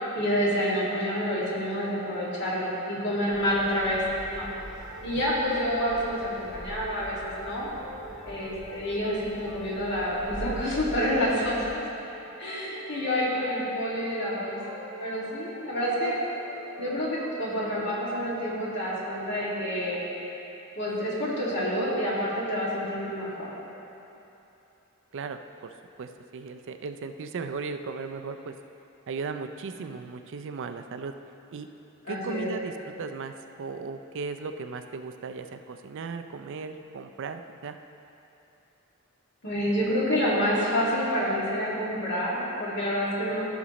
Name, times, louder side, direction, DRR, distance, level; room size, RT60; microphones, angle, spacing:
voice 1, 0.2-4.0 4.3-4.5 5.0-7.7 8.3-11.8 12.4-14.6 15.0-16.1 16.8-20.0 20.8-23.5 32.1-32.5 39.4-43.4, equal, 55° left, -6 dB, 2.1 m, -28 dB
sound 1, 3.3-11.7, equal, 5° right, 1.4 m, -44 dB
sound 2, 4.5-19.9, equal, 75° left, 1.9 m, -46 dB
voice 2, 25.1-25.7 26.0-28.5 29.1-31.1 31.5-31.7 32.1-37.8, right 4 dB, 60° right, 7 dB, 0.4 m, -36 dB
15.0 x 6.0 x 3.0 m, 2.9 s
head